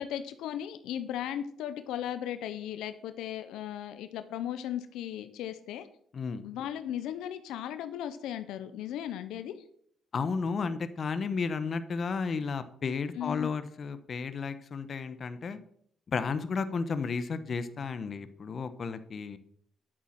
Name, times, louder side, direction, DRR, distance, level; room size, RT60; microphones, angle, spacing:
voice 1, 0.0-5.9 6.4-9.6 13.2-13.5, left 10 dB, 90° left, 10 dB, 0.8 m, -36 dB
voice 2, 10.1-15.6 16.1-19.4, left 5 dB, 45° left, 11 dB, 1.1 m, -33 dB
10.5 x 8.3 x 6.0 m, 0.65 s
cardioid pair, 90°, 0 cm